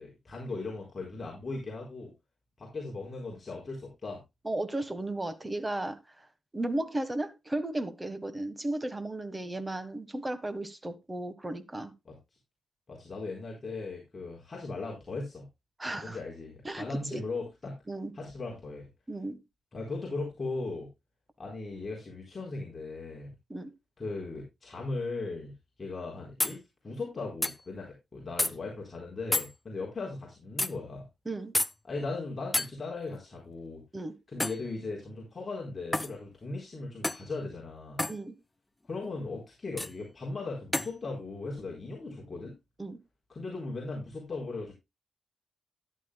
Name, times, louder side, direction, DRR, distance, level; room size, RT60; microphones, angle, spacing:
voice 1, 0.0-2.1 2.6-4.2 12.0-12.2 12.9-15.4 16.0-17.7 18.1-18.9 19.7-20.9 21.4-23.3 24.0-25.5 25.8-31.0 31.9-33.8 34.3-38.0 38.8-42.5 43.3-44.7, left 3 dB, 30° left, 4.3 m, -38 dB
voice 2, 4.4-6.0 6.5-11.9 15.8-16.2 16.6-17.2 17.9-18.1 19.1-19.4 23.5-23.7 31.2-31.5 33.9-34.1 38.1-38.3 42.8-43.0, right 1 dB, 15° right, 1.4 m, -34 dB
sound 1, 26.4-26.6 27.4-27.6 28.4-28.5 29.3-29.5 30.6-30.7 31.5-31.7 32.5-32.7 34.4-34.6 35.9-36.1 37.0-37.3 38.0-38.2 39.8-39.9 40.7-40.9, left 2 dB, 10° left, 0.6 m, -29 dB
13.5 x 11.0 x 2.3 m
wide cardioid pair, 155°, 0 cm